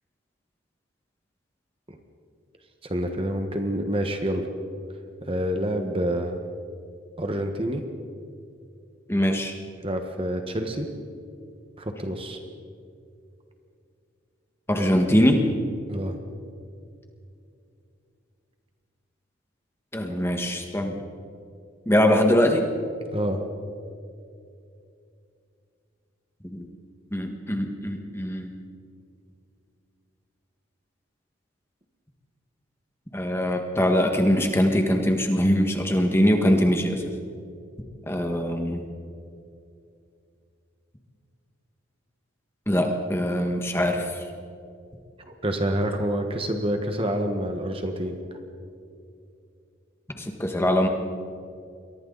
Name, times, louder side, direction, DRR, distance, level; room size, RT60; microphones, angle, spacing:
voice 1, 2.8-4.5 5.2-6.4 7.2-7.8 9.8-10.9 11.8-12.4 15.9-16.2 23.1-23.4 45.3-48.2, equal, 25° right, 5 dB, 1.4 m, -27 dB
voice 2, 9.1-9.6 14.7-15.5 19.9-21.0 21.9-22.7 26.4-26.7 27.1-28.5 33.1-37.0 38.1-38.8 42.7-44.2 50.2-50.9, equal, 10° left, 3 dB, 1.7 m, -22 dB
29.5 x 23.0 x 4.1 m, 2.5 s
head